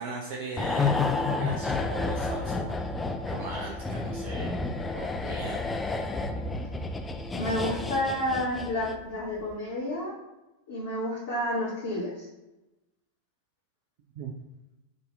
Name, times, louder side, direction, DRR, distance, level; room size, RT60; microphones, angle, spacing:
voice 1, 0.0-2.7 3.2-4.5 4.9-5.6 14.2-14.3, right 3 dB, 50° right, 1 dB, 0.5 m, -38 dB
sound 1, 0.6-9.1 9.4-9.6, left 3 dB, 15° left, 0.4 m, -30 dB
voice 2, 7.3-10.1 10.7-12.3, left 1 dB, 60° left, -10 dB, 1.4 m, -30 dB
4.0 x 2.7 x 3.3 m, 1.0 s
figure-of-eight pair, 90°, 0 cm